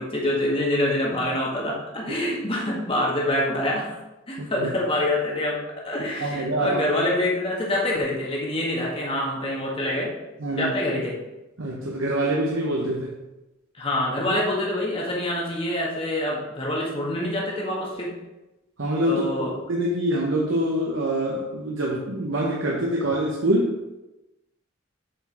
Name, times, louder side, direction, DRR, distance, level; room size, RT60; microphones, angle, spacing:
voice 1, 0.0-3.9 4.3-10.1 10.5-11.2 13.7-18.2 19.1-19.6, left 1 dB, 25° left, -3 dB, 1.7 m, -26 dB
voice 2, 4.4-4.7 6.2-6.8 10.4-10.7 11.6-13.2 18.8-19.2 19.7-23.7, right 1 dB, 85° right, -2 dB, 1.0 m, -25 dB
7.7 x 4.9 x 4.8 m, 1.0 s
head